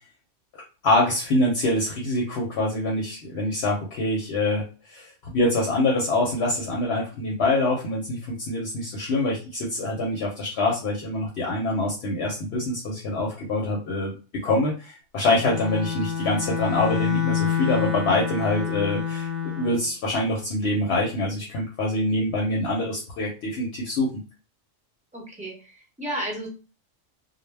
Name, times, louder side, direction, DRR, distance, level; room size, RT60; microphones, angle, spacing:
voice 1, 0.5-14.1 14.4-24.1, left 2 dB, 65° left, -1 dB, 0.8 m, -25 dB
Bowed string instrument, 15.3-19.8, left 7 dB, 70° right, 1.0 m, -27 dB
voice 2, 25.1-26.5, right 1 dB, 5° right, -3 dB, 0.7 m, -33 dB
2.2 x 2.1 x 3.2 m, 0.34 s
omnidirectional pair, 1.3 m